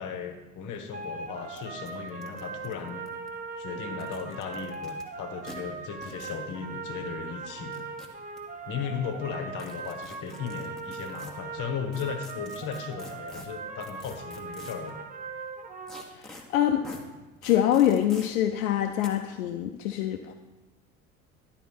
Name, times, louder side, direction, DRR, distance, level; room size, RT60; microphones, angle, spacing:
voice 1, 0.0-3.0 3.6-7.9 8.7-15.0, left 7 dB, 45° left, 6 dB, 1.1 m, -36 dB
sound 1, 0.8-0.9 1.0-1.1 1.5-1.6 1.9-3.3 3.9-5.0 5.4-5.6 6.0-6.4 7.5-8.4 9.6-11.3 11.9-14.9 15.9-16.4 16.8-17.0 17.4-18.3 19.0-19.1, left 1 dB, ahead, 1.2 m, -47 dB
sound 2, 0.9-16.0, right 4 dB, 20° right, 0.8 m, -39 dB
voice 2, 16.1-16.8 17.4-20.3, left 11 dB, 70° left, 5 dB, 0.6 m, -25 dB
11.0 x 4.1 x 6.0 m, 1.1 s
figure-of-eight pair, 55°, 43 cm